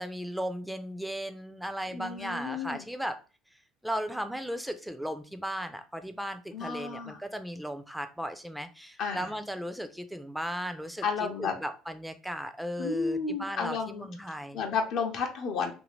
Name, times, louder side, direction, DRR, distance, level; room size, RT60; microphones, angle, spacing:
voice 1, 0.0-3.2 3.8-11.0 11.4-14.6, equal, 5° right, 9 dB, 0.5 m, -36 dB
voice 2, 1.9-2.8 6.5-7.2 9.0-9.3 11.0-11.5 12.8-14.1 14.5-15.7, left 5 dB, 60° left, 2 dB, 0.6 m, -32 dB
2.8 x 2.6 x 3.1 m, 0.34 s
hypercardioid pair, 75°, 0 cm